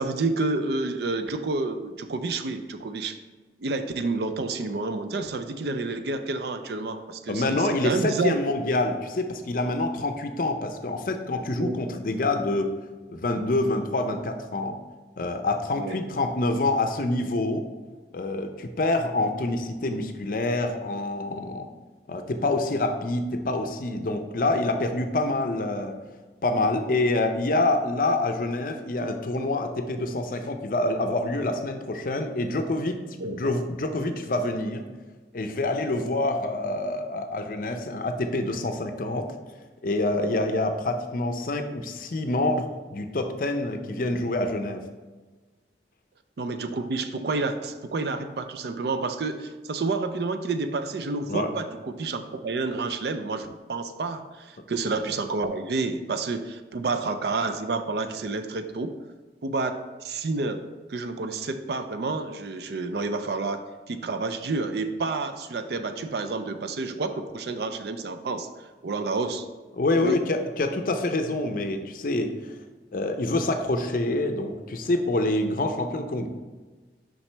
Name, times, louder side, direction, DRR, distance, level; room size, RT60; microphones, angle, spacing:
voice 1, 0.0-3.2 3.6-8.4 11.6-11.8 15.8-16.0 33.2-33.4 35.9-36.1 40.1-40.4 46.4-58.9 59.4-60.6 60.9-68.5 68.8-69.4 70.0-70.2, right 3 dB, 65° right, 8 dB, 0.4 m, -29 dB
voice 2, 7.3-12.8 13.1-14.8 15.2-17.7 18.1-21.7 22.1-25.9 26.4-33.0 33.2-34.8 35.3-39.3 39.8-44.8 51.3-51.5 69.7-72.3 72.9-76.3, left 2 dB, 50° left, 6 dB, 0.5 m, -26 dB
5.9 x 5.4 x 3.3 m, 1.3 s
head